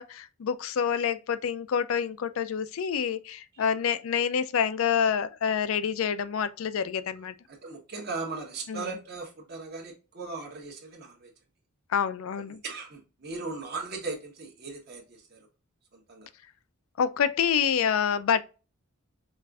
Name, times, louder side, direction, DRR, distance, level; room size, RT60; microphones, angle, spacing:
voice 1, 0.0-7.3 8.7-8.9 11.9-12.6 17.0-18.4, left 7 dB, 70° left, 0.4 m, -27 dB
voice 2, 7.5-11.3 12.5-15.5 15.9-16.3, right 3 dB, 45° right, 1.2 m, -38 dB
5.3 x 2.5 x 2.3 m
head